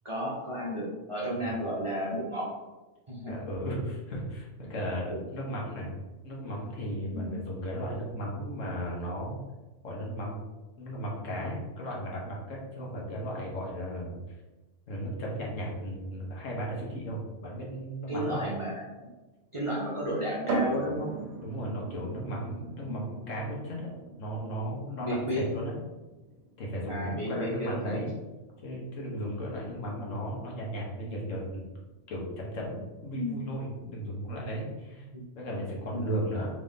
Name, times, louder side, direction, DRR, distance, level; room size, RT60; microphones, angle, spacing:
voice 1, 0.0-2.5 3.1-3.5 5.1-5.2 7.1-7.4 18.1-18.9 19.5-21.2 22.9-23.1 25.0-25.4 26.9-28.0 33.1-33.4 35.1-35.2 36.1-36.2, equal, 30° right, -7 dB, 0.6 m, -33 dB
voice 2, 3.3-5.9 6.2-9.4 9.8-10.4 10.8-14.2 14.9-18.4 21.4-25.8 26.6-28.1 28.6-31.7 32.1-35.1 35.4-36.5, equal, 75° left, -3 dB, 1.3 m, -35 dB
sound 1, 20.5-34.0, right 3 dB, 90° right, 1.2 m, -41 dB
3.7 x 2.5 x 3.5 m, 1.1 s
omnidirectional pair, 1.3 m